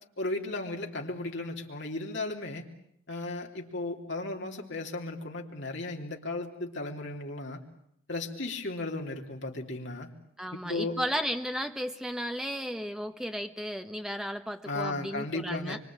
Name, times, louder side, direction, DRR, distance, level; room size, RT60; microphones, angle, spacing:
voice 1, 0.2-2.7 3.1-7.6 8.1-10.1 10.5-11.0 14.6-15.8, left 2 dB, 55° left, 1 dB, 3.4 m, -35 dB
voice 2, 10.4-15.8, equal, 5° right, 6 dB, 1.4 m, -34 dB
25.0 x 24.5 x 8.9 m, 0.72 s
head